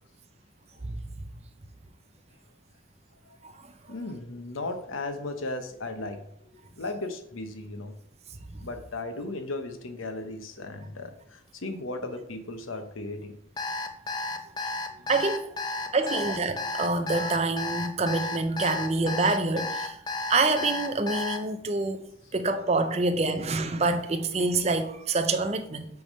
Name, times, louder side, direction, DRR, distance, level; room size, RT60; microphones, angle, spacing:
voice 1, 3.9-8.0 8.6-13.4 15.0-15.1 15.8-16.0, left 2 dB, 85° left, 0.9 m, -36 dB
Alarm, 13.6-21.4, left 2 dB, 20° left, 0.5 m, -32 dB
voice 2, 15.1-15.5 15.9-20.0 20.3-22.0 22.3-25.9, right 3 dB, 30° right, 0.5 m, -26 dB
7.9 x 3.5 x 5.4 m
head